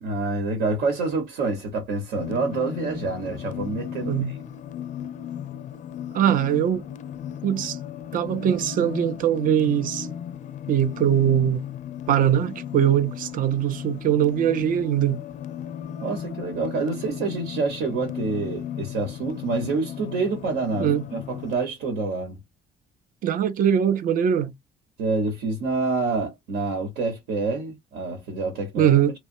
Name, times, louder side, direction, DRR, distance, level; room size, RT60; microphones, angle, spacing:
voice 1, 0.0-4.4 16.0-22.4 25.0-29.0, right 3 dB, 85° right, 1.1 m, -27 dB
sound 1, 2.2-21.6, left 9 dB, 50° left, 0.4 m, -36 dB
voice 2, 6.1-6.8 7.4-7.8 8.1-10.1 10.7-11.6 12.1-15.2 20.8-21.0 23.2-24.5 28.8-29.1, right 10 dB, 55° right, 0.5 m, -21 dB
3.1 x 2.2 x 2.6 m
cardioid pair, 110°, 17 cm